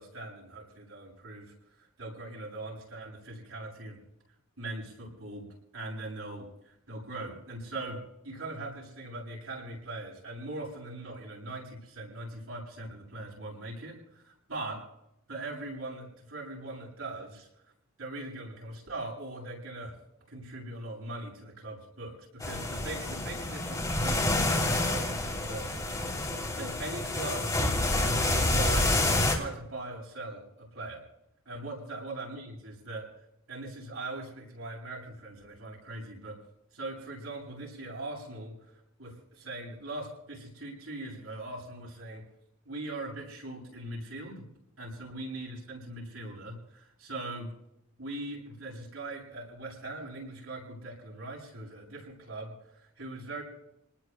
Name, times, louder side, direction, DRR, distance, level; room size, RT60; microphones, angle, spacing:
voice 1, 0.0-1.5 2.0-4.0 4.6-5.5 5.7-14.8 15.3-17.5 18.0-19.9 20.3-25.9 26.6-27.5 27.9-29.0 29.3-31.0 31.5-33.1 33.5-36.4 36.7-38.7 39.0-42.2 42.6-44.5 44.8-47.5 48.0-53.4, right 2 dB, 80° right, -4 dB, 7.6 m, -41 dB
sound 1, 22.4-29.4, left 2 dB, 20° left, 3.1 m, -28 dB
29.5 x 20.0 x 2.2 m, 0.79 s
head